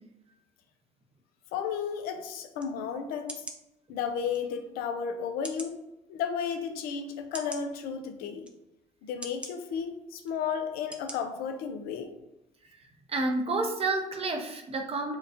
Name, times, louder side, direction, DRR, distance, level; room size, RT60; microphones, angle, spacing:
voice 1, 1.5-3.4 3.9-5.7 6.1-8.4 9.0-12.1, left 7 dB, 75° left, 7 dB, 0.5 m, -33 dB
sound 1, 2.6-2.7 3.3-3.6 4.3-4.4 5.4-5.8 6.5-6.6 7.3-7.6 8.4-8.6 9.2-9.5 10.2-10.4 10.9-11.2 11.6-11.7, right 1 dB, 5° right, 0.5 m, -41 dB
voice 2, 13.1-15.2, right 2 dB, 40° right, 3 dB, 0.8 m, -29 dB
4.4 x 2.4 x 2.6 m, 0.88 s
supercardioid pair, 70°, 16 cm